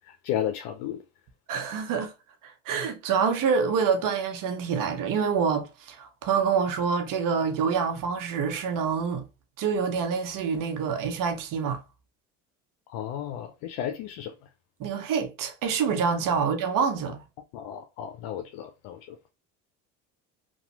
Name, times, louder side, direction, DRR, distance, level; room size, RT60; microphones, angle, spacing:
voice 1, 0.1-1.0 12.9-14.3 17.5-19.3, left 10 dB, 75° left, 0.6 m, -33 dB
voice 2, 1.5-2.1 2.4-9.3 9.6-11.8 14.8-17.2, right 6 dB, 55° right, 0.8 m, -26 dB
3.0 x 2.2 x 2.9 m
supercardioid pair, 80°, 39 cm